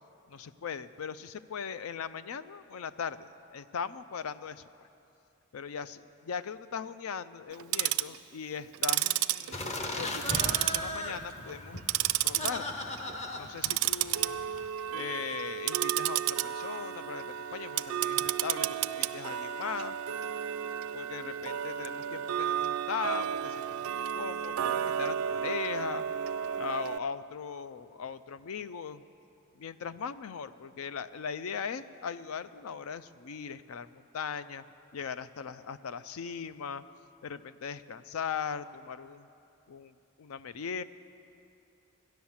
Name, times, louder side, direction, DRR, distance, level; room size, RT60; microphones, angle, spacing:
voice 1, 0.3-4.9 5.5-6.0 6.3-9.6 10.0-11.8 12.2-12.8 13.4-14.4 14.9-20.0 20.9-26.2 26.5-29.0 29.6-34.6 34.9-36.8 37.2-39.3 39.7-40.8, left 6 dB, 80° left, 14 dB, 0.4 m, -39 dB
Tick-tock, 7.5-8.2 8.7-10.0 10.3-11.2 11.5-12.5 12.9-13.1 13.6-27.0, right 11 dB, 75° right, 0.4 m, -32 dB
sound 1, 9.5-14.7, left 1 dB, 30° left, 0.9 m, -38 dB
13.5 x 10.5 x 7.2 m, 2.7 s
head